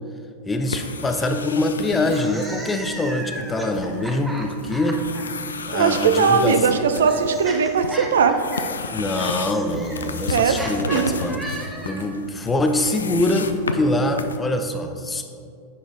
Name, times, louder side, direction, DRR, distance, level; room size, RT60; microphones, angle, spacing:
voice 1, 0.5-5.0 5.7-6.6 8.9-15.2, left 1 dB, 15° left, 5 dB, 0.6 m, -24 dB
sound 1, 0.6-14.4, left 4 dB, 70° left, 0.4 m, -33 dB
sound 2, 2.0-5.2 6.3-12.2, right 1 dB, 5° right, 0.9 m, -36 dB
voice 2, 5.7-8.4 10.3-11.2, right 6 dB, 65° right, 9 dB, 0.4 m, -19 dB
9.7 x 4.0 x 3.8 m, 2.3 s
figure-of-eight pair, 90°, 0 cm